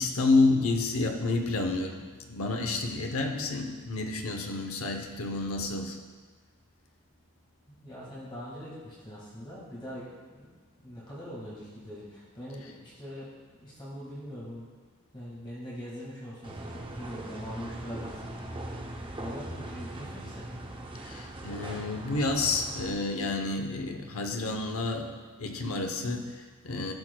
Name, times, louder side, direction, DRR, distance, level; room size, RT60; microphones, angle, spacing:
voice 1, 0.0-6.0 21.0-25.1 25.4-26.9, left 3 dB, 75° left, 4 dB, 0.8 m, -29 dB
voice 2, 7.7-10.5 10.8-13.3 13.6-14.7 15.1-18.9 19.2-20.5, equal, 25° left, -7 dB, 1.8 m, -42 dB
sound 1, 16.4-22.9, right 1 dB, 25° right, 0.6 m, -40 dB
12.0 x 6.1 x 2.2 m, 1.4 s
head